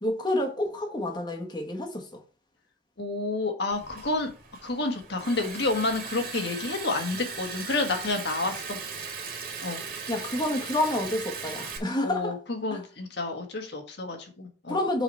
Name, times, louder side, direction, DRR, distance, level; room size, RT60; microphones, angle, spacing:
voice 1, 0.0-2.2 10.1-12.4 12.7-12.8 14.7-15.0, left 1 dB, 25° left, 1.4 m, -29 dB
voice 2, 3.0-4.3 4.6-8.8 9.6-9.8 12.0-14.8, left 2 dB, 60° left, 1.6 m, -29 dB
Liquid, 3.7-11.8, right 5 dB, 50° right, 2.1 m, -38 dB
7.4 x 4.9 x 4.4 m
head